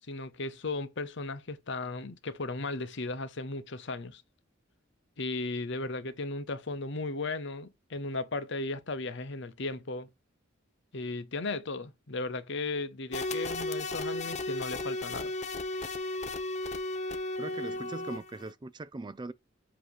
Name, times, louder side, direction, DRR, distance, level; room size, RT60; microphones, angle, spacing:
voice 1, 0.1-4.2 5.2-10.1 10.9-15.3, left 3 dB, 65° left, 0.9 m, -36 dB
sound 1, 13.1-18.5, left 2 dB, 35° left, 0.8 m, -35 dB
voice 2, 17.4-19.3, right 2 dB, 25° right, 0.4 m, -40 dB
7.6 x 2.9 x 4.7 m
head